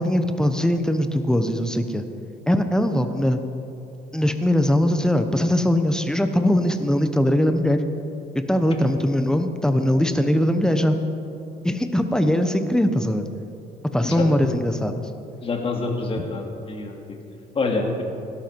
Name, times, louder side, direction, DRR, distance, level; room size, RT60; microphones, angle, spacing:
voice 1, 0.0-2.0 2.5-3.4 4.1-7.8 8.5-11.0 11.6-13.3 13.9-15.1 16.2-16.3, left 1 dB, 5° left, 8 dB, 1.0 m, -21 dB
voice 2, 15.4-17.0 17.5-18.0, left 3 dB, 35° left, 1 dB, 2.3 m, -26 dB
17.0 x 12.5 x 4.7 m, 2.8 s
cardioid pair, 110°, 17 cm